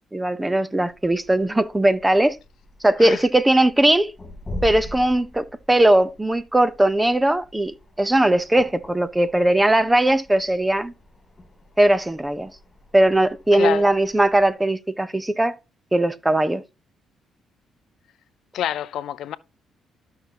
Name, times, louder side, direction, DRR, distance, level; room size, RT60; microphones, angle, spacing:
voice 1, 0.1-2.4 2.8-4.1 4.6-10.9 11.8-12.5 12.9-15.6 15.9-16.6, right 1 dB, 10° right, 0.8 m, -19 dB
sound 1, 0.9-14.5, equal, 20° left, 3.1 m, -42 dB
voice 2, 13.5-13.9 18.5-19.4, left 11 dB, 75° left, 0.5 m, -27 dB
13.5 x 5.7 x 2.9 m
cardioid pair, 90°, 0 cm